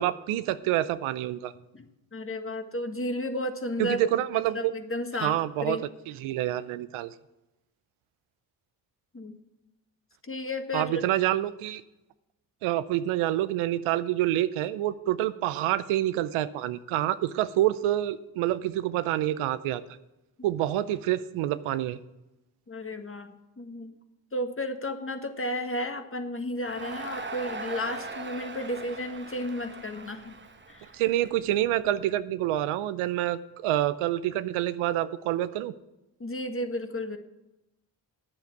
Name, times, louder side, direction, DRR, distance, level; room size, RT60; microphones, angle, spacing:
voice 1, 0.0-1.5 3.8-4.6 5.2-5.8 6.2-7.1 10.7-11.8 12.6-19.8 20.4-22.0 30.9-35.7, right 13 dB, 85° right, 14 dB, 0.7 m, -27 dB
voice 2, 2.1-4.1 4.5-5.8 9.1-9.4 10.2-11.0 22.7-23.9 24.3-30.4 30.7-30.9 36.2-37.2, left 1 dB, 25° left, 7 dB, 1.6 m, -33 dB
Crowd, 26.7-31.9, right 3 dB, 25° right, 1.2 m, -40 dB
9.1 x 7.5 x 8.2 m, 0.94 s
supercardioid pair, 50°, 48 cm